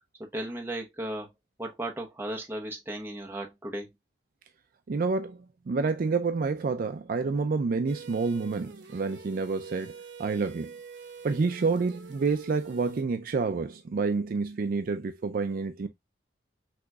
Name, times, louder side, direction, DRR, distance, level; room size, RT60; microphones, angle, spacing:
voice 1, 0.2-1.3 1.6-3.9, right 1 dB, 15° right, 0.9 m, -35 dB
voice 2, 4.9-5.4 5.7-9.9 10.2-10.7 11.2-15.9, right 4 dB, 50° right, 0.4 m, -28 dB
sound 1, 7.9-13.0, right 5 dB, 80° right, 0.9 m, -46 dB
6.1 x 3.0 x 2.2 m
head